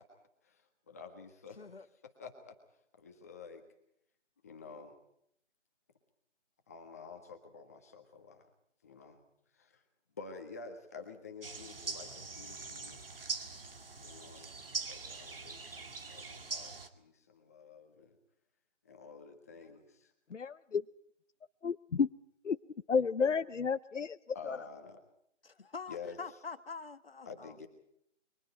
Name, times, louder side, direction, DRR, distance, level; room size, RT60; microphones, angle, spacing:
voice 1, 0.4-1.6 2.2-2.5 3.0-3.6 4.4-4.9 6.7-8.4 8.8-9.2 9.6-9.8 10.2-13.0 14.0-14.5 14.8-18.1 18.9-20.1 24.3-25.0 25.9-26.2 27.2-27.7, left 5 dB, 15° left, 4 dB, 1.5 m, -49 dB
voice 2, 1.6-1.9 25.4-27.6, left 5 dB, 50° left, 11 dB, 1.4 m, -45 dB
sound 1, 11.4-16.9, right 4 dB, 50° right, 2.2 m, -42 dB
voice 3, 20.3-20.8 21.6-22.1 22.4-22.6 22.9-24.2 24.4-24.6, left 5 dB, 75° left, 11 dB, 0.8 m, -31 dB
29.5 x 23.5 x 4.4 m, 0.73 s
figure-of-eight pair, 170°, 37 cm